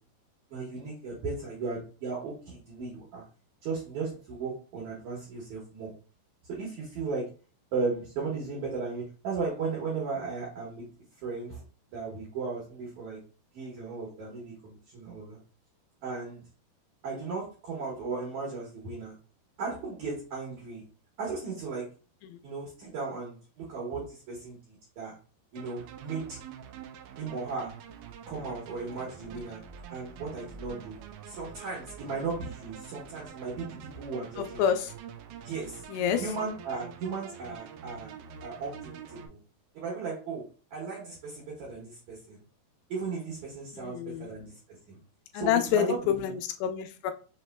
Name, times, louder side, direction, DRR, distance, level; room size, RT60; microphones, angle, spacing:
voice 1, 0.5-3.2 3.6-5.9 6.5-7.3 7.7-10.8 11.2-11.6 11.9-13.2 13.5-15.4 16.0-16.4 17.0-19.1 19.6-20.8 21.2-21.9 22.4-25.2 25.5-26.4 27.2-27.7 28.3-29.6 29.9-31.0 31.3-34.6 35.4-35.8 36.2-38.2 38.4-39.4 39.7-42.4 42.9-45.0 45.3-46.3, right 4 dB, 65° right, -4 dB, 2.0 m, -36 dB
sound 1, 25.6-39.3, right 8 dB, 90° right, 2.1 m, -46 dB
voice 2, 34.4-34.9 35.9-36.2 43.7-44.3 45.3-47.1, left 9 dB, 85° left, 7 dB, 2.6 m, -28 dB
6.4 x 3.1 x 2.2 m, 0.36 s
omnidirectional pair, 5.0 m